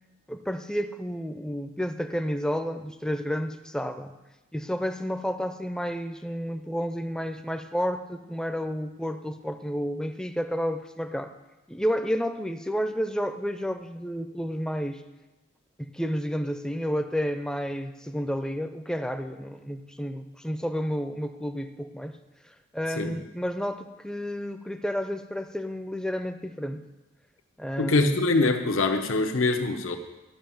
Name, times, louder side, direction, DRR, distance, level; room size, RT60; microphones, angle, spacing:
voice 1, 0.3-4.1 4.5-11.3 11.7-15.0 15.8-22.2 22.4-26.9 27.6-28.3, equal, 5° left, 8 dB, 0.4 m, -31 dB
voice 2, 27.8-30.0, left 3 dB, 85° left, 4 dB, 1.0 m, -24 dB
12.5 x 6.0 x 7.2 m, 1.1 s
head